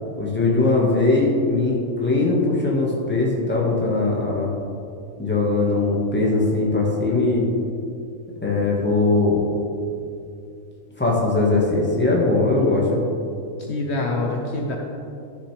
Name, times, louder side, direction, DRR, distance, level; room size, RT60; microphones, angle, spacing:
voice 1, 0.2-4.5 5.2-7.5 8.4-9.4 11.0-13.0, left 3 dB, 10° left, -3 dB, 1.5 m, -20 dB
voice 2, 13.6-14.8, left 2 dB, 60° left, 0 dB, 1.0 m, -26 dB
12.5 x 6.6 x 3.3 m, 2.5 s
omnidirectional pair, 1.3 m